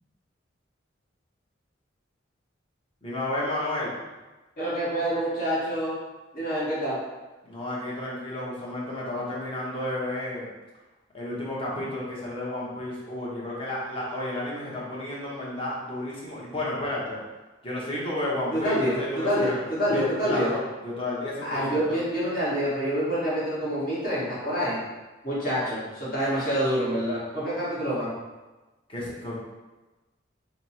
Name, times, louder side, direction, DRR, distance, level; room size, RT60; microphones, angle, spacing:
voice 1, 3.0-3.9 7.4-10.5 11.1-17.2 17.6-22.0 28.9-29.4, left 1 dB, 30° left, -6 dB, 0.9 m, -32 dB
voice 2, 4.6-6.0 6.3-7.0 18.5-20.5 21.4-24.8 25.2-28.1, equal, 45° left, -8 dB, 1.2 m, -27 dB
3.1 x 2.0 x 4.1 m, 1.2 s
head